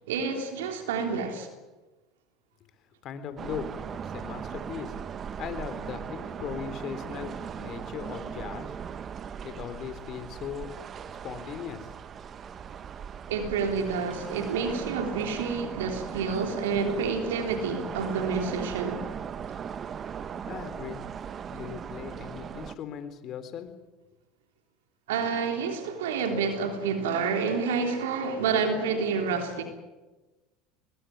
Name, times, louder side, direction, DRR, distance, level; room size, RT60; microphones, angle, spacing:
voice 1, 0.1-1.5 13.3-19.1 25.1-29.6, right 5 dB, 80° right, 3.3 m, -29 dB
voice 2, 3.0-4.9 5.4-8.7 9.4-10.7 11.1-11.9 20.5-21.0 21.5-23.7, left 8 dB, 50° left, 3.6 m, -38 dB
sound 1, 3.4-22.7, right 7 dB, 35° right, 1.2 m, -38 dB
23.0 x 21.0 x 9.3 m
hypercardioid pair, 85°, 0 cm